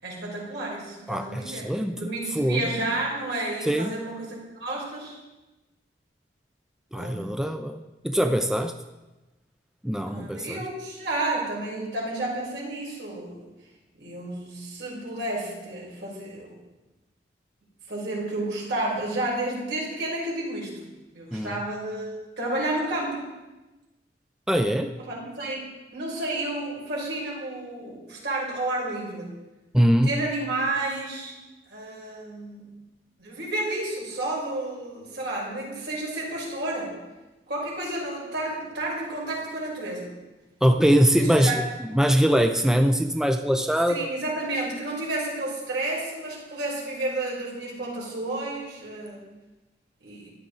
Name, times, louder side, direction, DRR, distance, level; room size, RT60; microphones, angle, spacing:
voice 1, 0.0-1.7 2.0-5.2 6.9-7.3 10.1-13.4 14.0-16.5 17.9-20.8 21.1-23.3 25.1-25.7 25.9-29.3 30.1-31.3 31.7-32.7 33.2-37.0 37.5-40.1 41.1-41.6 43.9-49.2 50.0-50.3, right 2 dB, 75° right, -4 dB, 5.4 m, -31 dB
voice 2, 1.1-2.6 3.6-3.9 6.9-8.7 9.8-10.6 21.3-21.6 24.5-24.9 29.7-30.1 40.6-44.1, equal, 5° right, 6 dB, 0.5 m, -22 dB
15.0 x 12.0 x 4.0 m, 1.1 s
head